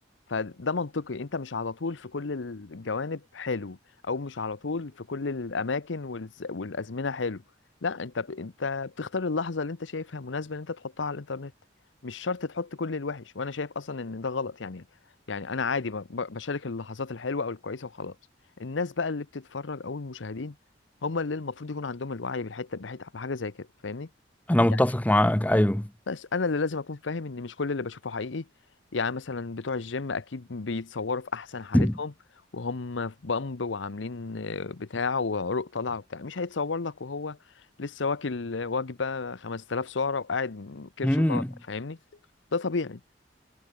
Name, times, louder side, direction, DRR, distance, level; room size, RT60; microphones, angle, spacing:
voice 1, 0.3-3.8 4.0-7.4 7.8-11.5 12.0-14.8 15.3-18.2 18.6-20.5 21.0-24.1 24.7-24.8 26.1-28.5 28.9-32.1 32.5-37.4 37.8-42.0 42.5-43.0, left 4 dB, 85° left, 0.8 m, -32 dB
voice 2, 24.5-25.9 31.7-31.9 41.0-41.5, left 1 dB, 10° left, 0.6 m, -22 dB
head